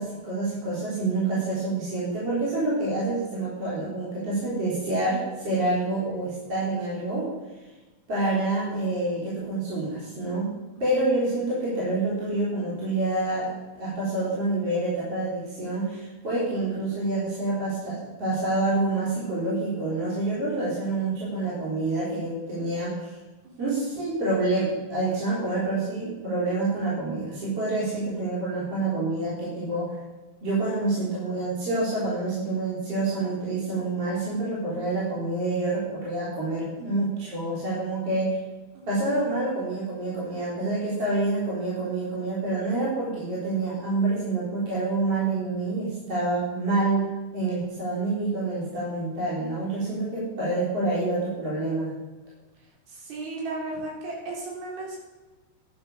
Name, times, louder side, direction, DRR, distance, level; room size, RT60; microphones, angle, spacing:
voice 1, 0.0-7.3 8.1-10.5 10.8-23.1 23.6-30.0 30.4-38.4 38.9-51.9, right 2 dB, 40° right, -8 dB, 4.8 m, -27 dB
voice 2, 52.9-55.0, right 2 dB, 80° right, -2 dB, 5.5 m, -35 dB
11.5 x 10.5 x 6.7 m, 1.2 s
omnidirectional pair, 4.3 m